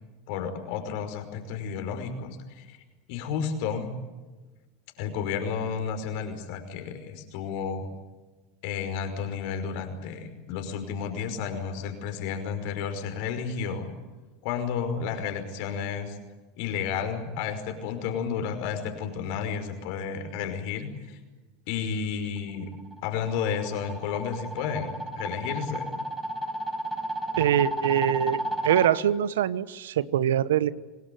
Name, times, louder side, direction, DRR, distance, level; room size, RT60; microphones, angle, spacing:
voice 1, 0.3-2.8 3.1-3.9 5.0-7.9 8.6-13.9 14.4-16.2 16.6-21.2 21.7-22.7 23.0-26.0, left 7 dB, 65° left, 7 dB, 5.4 m, -32 dB
sound 1, 22.7-28.9, right 1 dB, 5° right, 5.0 m, -32 dB
voice 2, 27.4-30.7, right 10 dB, 85° right, 17 dB, 1.0 m, -24 dB
26.5 x 19.5 x 9.4 m, 1.2 s
hypercardioid pair, 95°, 0 cm